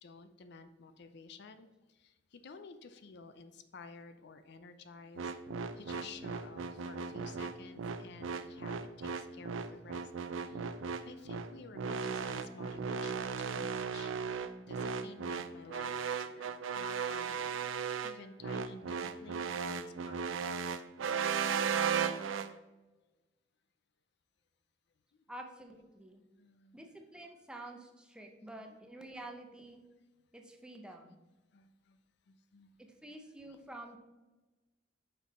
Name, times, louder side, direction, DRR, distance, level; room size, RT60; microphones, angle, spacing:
voice 1, 0.0-5.3 5.7-10.7 11.0-14.1 14.6-20.7 25.1-25.2 26.4-26.8 27.7-27.8 28.6-28.8 31.5-32.0 32.3-32.7, left 4 dB, 60° left, 10 dB, 0.5 m, -53 dB
sound 1, 5.2-22.5, right 6 dB, 80° right, 0.5 m, -36 dB
voice 2, 25.3-26.2 26.7-29.8 30.3-31.2 32.8-34.0, right 1 dB, 5° right, 3 dB, 0.7 m, -49 dB
6.1 x 5.5 x 4.1 m, 1.1 s
head